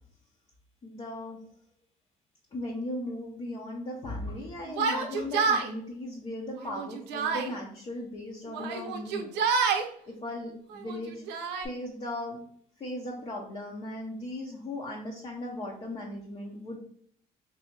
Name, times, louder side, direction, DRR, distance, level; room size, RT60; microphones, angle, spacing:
voice 1, 0.8-1.4 2.5-9.3 9.7-11.2 11.6-12.4 12.8-16.8, left 1 dB, 35° left, -2 dB, 0.7 m, -37 dB
Yell, 4.7-5.7 6.6-7.5 8.5-9.9 10.7-11.7, right 5 dB, 90° right, 0.6 m, -28 dB
2.7 x 2.7 x 4.3 m, 0.62 s
cardioid pair, 110°, 17 cm